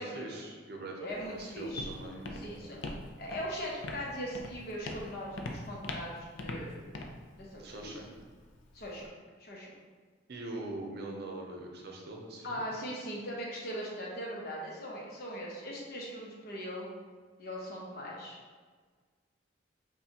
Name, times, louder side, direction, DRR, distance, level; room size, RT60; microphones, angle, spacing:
voice 1, 0.0-1.0 1.3-2.5 7.6-8.1 10.3-12.6, right 2 dB, 55° right, 0 dB, 0.6 m, -42 dB
voice 2, 1.0-1.9 2.4-2.8 3.2-6.8 7.3-7.9 8.7-9.1 9.4-9.7 12.4-16.9 17.4-18.4, equal, 55° left, -3 dB, 0.9 m, -40 dB
Walk footsteps, 1.1-9.1, left 2 dB, 80° left, 0.4 m, -43 dB
5.6 x 2.3 x 2.8 m, 1.5 s
head